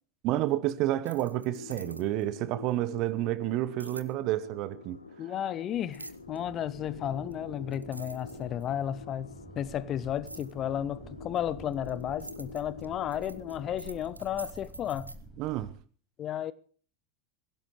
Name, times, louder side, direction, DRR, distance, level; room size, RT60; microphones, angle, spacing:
voice 1, 0.2-5.0 15.4-15.7, right 15 dB, 45° right, 1.2 m, -30 dB
sound 1, 0.9-2.3 3.8-4.1 5.9-6.4 7.3-7.4 7.7-8.8 10.3-10.5 11.4-15.2, right 2 dB, 85° right, 0.9 m, -46 dB
sound 2, 1.2-14.0, left 4 dB, 80° left, 1.2 m, -47 dB
voice 2, 5.2-15.1 16.2-16.5, left 10 dB, 35° left, 0.8 m, -33 dB
sound 3, 5.7-15.7, right 3 dB, 15° right, 4.7 m, -50 dB
24.0 x 16.5 x 3.2 m
figure-of-eight pair, 80°, 0 cm